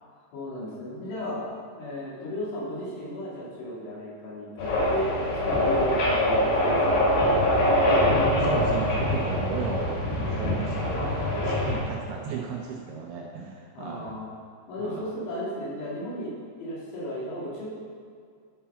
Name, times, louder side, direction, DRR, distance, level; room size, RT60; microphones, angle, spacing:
voice 1, 0.3-1.5 1.8-7.3 13.8-14.3 14.7-16.3 16.6-17.7, left 1 dB, 85° left, -8 dB, 5.2 m, -34 dB
sound 1, 4.6-11.8, left 1 dB, 60° left, 4.2 m, -24 dB
voice 2, 8.4-10.0 10.3-14.1 14.8-15.0, right 5 dB, 75° right, -1 dB, 2.4 m, -35 dB
11.0 x 6.0 x 5.7 m, 2.2 s
omnidirectional pair, 5.3 m